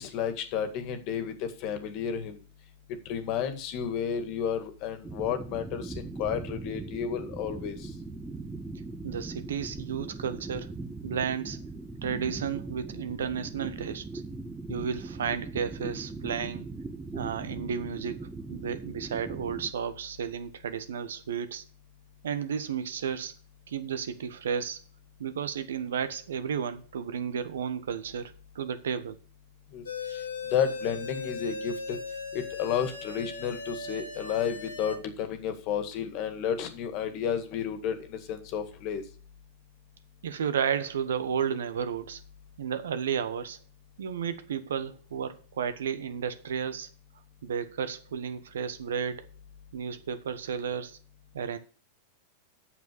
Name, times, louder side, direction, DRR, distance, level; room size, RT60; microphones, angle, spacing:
voice 1, 0.0-2.4 3.1-7.9 29.7-29.8 30.1-30.2 30.5-32.0 32.3-39.0, left 8 dB, 50° left, 1.9 m, -32 dB
sound 1, 5.0-19.7, right 3 dB, 10° right, 1.1 m, -40 dB
voice 2, 9.0-10.7 11.0-11.6 12.0-14.0 14.7-16.7 17.1-21.6 22.2-23.3 23.7-24.8 25.2-29.2 40.2-42.2 42.6-43.6 44.0-46.9 47.4-49.3 49.7-51.0 51.3-51.6, right 7 dB, 75° right, 1.1 m, -32 dB
sound 2, 29.9-35.0, left 3 dB, 90° left, 2.2 m, -38 dB
8.3 x 7.0 x 6.8 m
hypercardioid pair, 100°, 0 cm